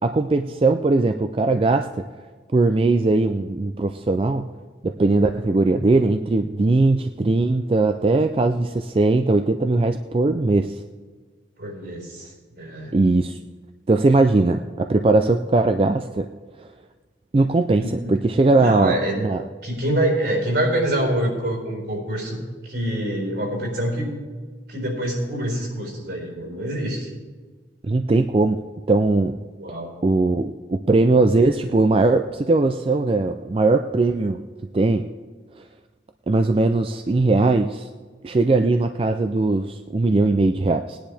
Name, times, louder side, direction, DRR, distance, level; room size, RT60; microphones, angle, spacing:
voice 1, 0.0-2.1 2.5-4.5 4.8-10.8 12.9-13.4 13.9-16.3 16.6-16.7 17.3-19.4 27.8-28.6 28.9-29.4 30.0-34.4 34.7-35.1 35.6-35.7 36.3-37.9 38.2-41.0, right 2 dB, 30° right, 7 dB, 0.3 m, -20 dB
voice 2, 11.6-12.3 12.6-13.0 17.8-18.1 18.6-19.2 19.6-24.1 24.7-27.1 29.6-29.9, right 1 dB, 65° right, 0 dB, 4.3 m, -25 dB
19.0 x 10.0 x 3.4 m, 1.4 s
head